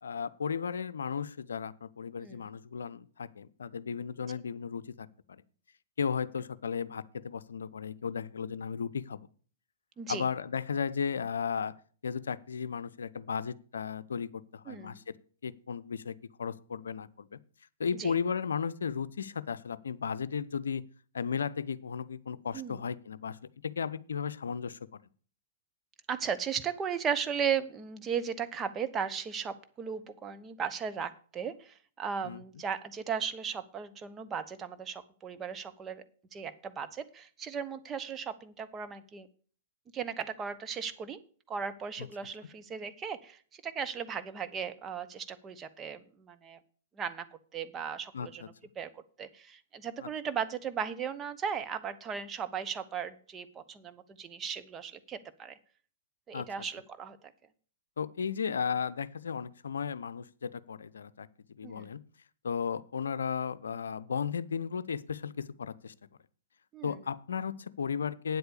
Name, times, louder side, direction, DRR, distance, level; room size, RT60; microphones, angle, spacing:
voice 1, 0.0-5.4 6.0-9.3 10.1-11.7 12.0-15.0 15.4-17.4 17.8-20.8 21.1-23.4 23.6-24.8 32.2-32.4 42.0-42.1 48.1-48.5 50.0-50.1 56.3-56.5 58.0-61.3 61.6-62.0 62.4-65.9 66.8-68.4, left 6 dB, 70° left, 16 dB, 0.6 m, -35 dB
voice 2, 2.2-2.5 10.0-10.2 14.7-15.0 17.9-18.1 22.5-22.8 26.1-36.0 36.3-39.3 39.9-41.2 41.5-46.6 47.0-47.2 47.5-55.6 56.3-57.2 61.6-61.9 66.7-67.0, right 7 dB, 20° right, 10 dB, 1.0 m, -36 dB
9.3 x 7.9 x 6.7 m, 0.44 s
figure-of-eight pair, 110°, 0 cm